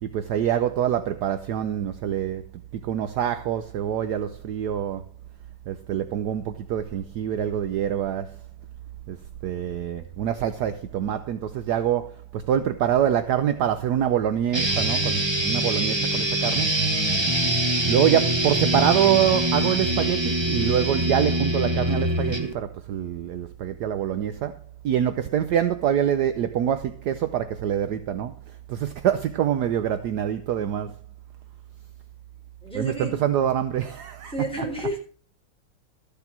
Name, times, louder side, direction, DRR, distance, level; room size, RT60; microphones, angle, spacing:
voice 1, 0.0-2.5 2.7-5.0 5.7-8.4 9.1-9.2 9.4-16.7 17.9-24.6 24.8-31.0 32.7-34.7, right 10 dB, 70° right, 1.0 m, -25 dB
sound 1, 14.5-22.5, right 1 dB, 20° right, 0.7 m, -24 dB
voice 2, 32.6-33.2 34.3-35.0, equal, ahead, 3.9 m, -31 dB
13.5 x 7.0 x 5.9 m
omnidirectional pair, 2.4 m